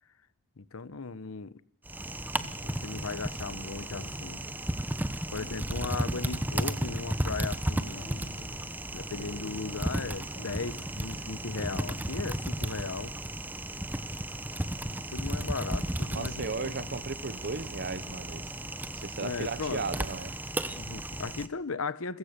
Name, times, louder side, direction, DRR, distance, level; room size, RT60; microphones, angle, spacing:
voice 1, 0.6-1.6 2.6-4.4 5.3-8.0 8.9-13.1 15.1-16.7 19.2-19.8 20.6-22.2, left 4 dB, 65° left, 0.9 m, -37 dB
Typing, 1.8-21.5, right 1 dB, 10° right, 0.9 m, -34 dB
sound 1, 2.4-3.2 4.0-4.9 5.4-6.3 6.7-7.5 8.0-8.8 9.2-10.0 10.4-11.2 11.6-12.5, equal, 45° left, 4.1 m, -48 dB
voice 2, 16.1-18.4 18.9-20.3, right 4 dB, 45° right, 0.8 m, -36 dB
29.0 x 15.5 x 6.7 m
head